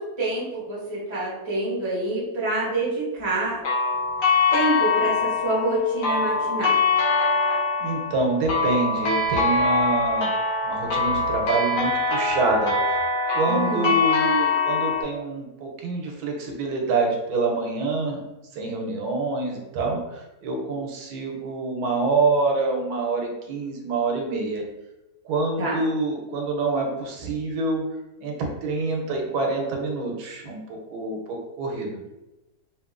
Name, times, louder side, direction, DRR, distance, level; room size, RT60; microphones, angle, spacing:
voice 1, 0.0-3.6 4.5-6.7 13.5-13.9 25.6-25.8, right 2 dB, 25° right, -6 dB, 0.6 m, -26 dB
sound 1, 3.6-15.0, left 3 dB, 65° left, 1.0 m, -23 dB
voice 2, 7.8-10.3 10.6-12.7 13.3-18.2 18.5-24.6 25.2-27.8 28.2-30.6 30.9-32.0, right 3 dB, 85° right, 1 dB, 1.1 m, -26 dB
2.8 x 2.6 x 2.4 m, 1.0 s
omnidirectional pair, 1.6 m